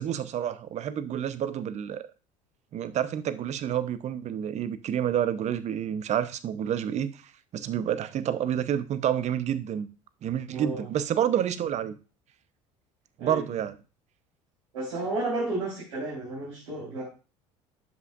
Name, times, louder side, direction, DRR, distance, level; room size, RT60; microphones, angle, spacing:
voice 1, 0.0-2.1 2.7-7.1 7.5-9.9 10.2-11.9 13.2-13.7, right 10 dB, 45° right, 0.8 m, -29 dB
voice 2, 14.7-17.0, right 2 dB, 80° right, 3.8 m, -32 dB
10.5 x 5.7 x 2.5 m
hypercardioid pair, 70°, 16 cm